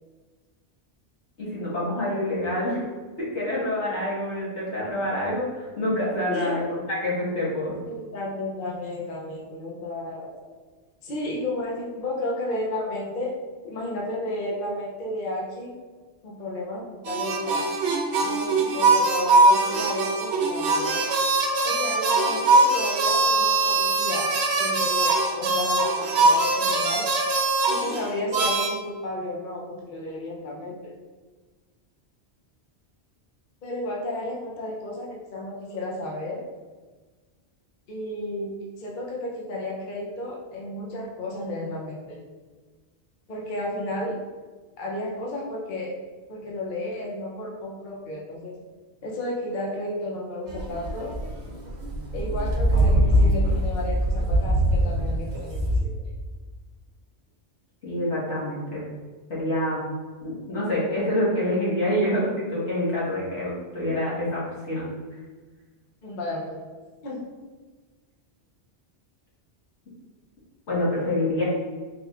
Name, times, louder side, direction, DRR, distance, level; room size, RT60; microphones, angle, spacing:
voice 1, 1.4-2.8 3.2-6.6 6.9-7.8 57.8-58.8 59.3-59.8 60.2-64.9 70.7-71.4, left 1 dB, 80° left, -7 dB, 1.8 m, -26 dB
voice 2, 6.2-6.6 7.8-10.5 11.0-13.3 13.6-15.7 16.2-17.6 18.2-21.1 21.6-24.3 24.6-27.0 27.7-30.9 33.6-36.4 37.9-42.2 43.3-44.2 44.8-45.9 46.3-48.5 49.0-51.1 52.1-55.9 66.0-66.6 67.0-67.2, left 1 dB, 50° left, -3 dB, 0.8 m, -32 dB
sound 1, 17.1-28.7, right 3 dB, 75° right, 0.9 m, -22 dB
sound 2, 50.5-55.8, equal, 45° right, 0.7 m, -22 dB
4.6 x 3.5 x 2.4 m, 1.4 s
omnidirectional pair, 1.2 m